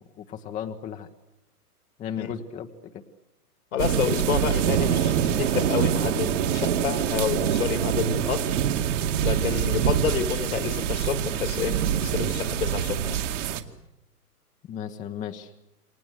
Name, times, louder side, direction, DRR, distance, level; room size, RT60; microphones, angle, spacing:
voice 1, 0.2-1.1 2.0-3.0 14.7-15.6, left 8 dB, 15° left, 1.2 m, -35 dB
voice 2, 3.7-8.6 9.2-13.2, left 8 dB, 60° left, 2.7 m, -29 dB
sound 1, 3.8-13.6, right 9 dB, 50° right, 2.4 m, -25 dB
28.5 x 25.0 x 8.1 m
figure-of-eight pair, 125°, 47 cm